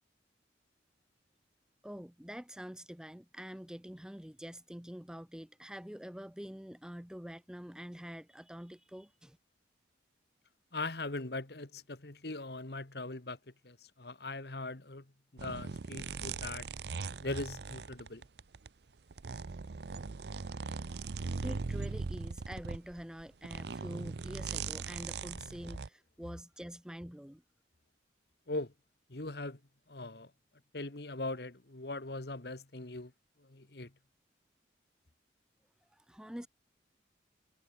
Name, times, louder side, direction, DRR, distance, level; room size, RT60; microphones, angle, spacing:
voice 1, 1.8-9.4 21.4-27.4 35.9-36.5, equal, 5° right, 0.6 m, -46 dB
voice 2, 10.7-15.1 15.3-16.7 17.2-18.3 28.5-28.7 29.1-29.6 29.9-30.3 30.7-33.1 33.4-33.9, left 2 dB, 60° left, 1.6 m, -40 dB
sound 1, 15.4-18.7 19.1-25.9, right 4 dB, 65° right, 0.6 m, -40 dB
head